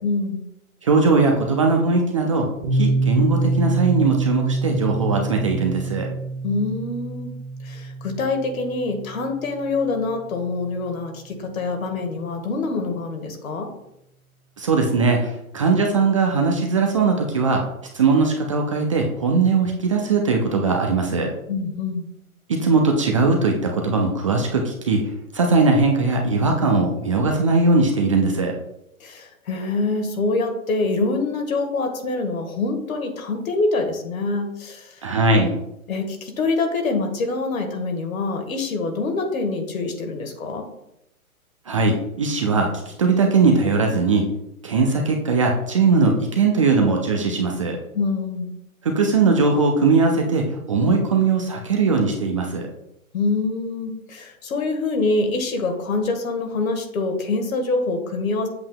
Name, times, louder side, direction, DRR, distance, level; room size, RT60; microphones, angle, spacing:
voice 1, 0.0-0.4 6.4-7.3 7.6-13.7 21.5-22.1 29.0-34.9 35.9-40.7 47.9-48.5 53.1-58.5, left 3 dB, 65° left, 4 dB, 1.6 m, -25 dB
voice 2, 0.8-2.5 2.7-6.1 14.6-17.6 17.9-21.3 22.5-28.5 35.0-35.6 41.7-44.3 44.6-47.8 48.8-52.7, right 4 dB, 25° right, 1 dB, 0.4 m, -20 dB
Piano, 2.6-10.1, right 3 dB, 45° right, 1.9 m, -26 dB
7.7 x 6.9 x 2.2 m, 0.83 s
hypercardioid pair, 130°, 44 cm